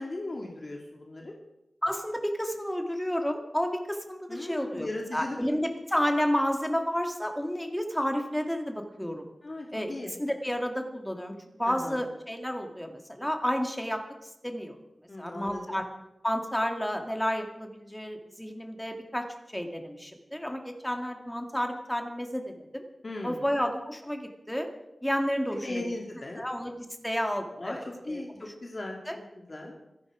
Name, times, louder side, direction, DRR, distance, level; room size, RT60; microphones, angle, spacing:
voice 1, 0.0-1.3 4.3-5.4 9.4-10.1 11.7-12.1 15.1-15.8 23.0-23.4 25.5-26.4 27.6-27.8 28.0-29.0 29.5-29.8, left 2 dB, 40° left, 0 dB, 2.4 m, -37 dB
voice 2, 1.8-4.9 5.1-9.3 9.7-9.9 10.2-14.0 14.4-14.8 15.2-15.8 16.2-19.3 19.5-22.8 23.2-24.7 25.0-25.8 26.4-28.2 29.1-29.2, equal, 5° left, 4 dB, 2.1 m, -31 dB
25.0 x 11.0 x 5.0 m, 0.90 s
wide cardioid pair, 105°, 0 cm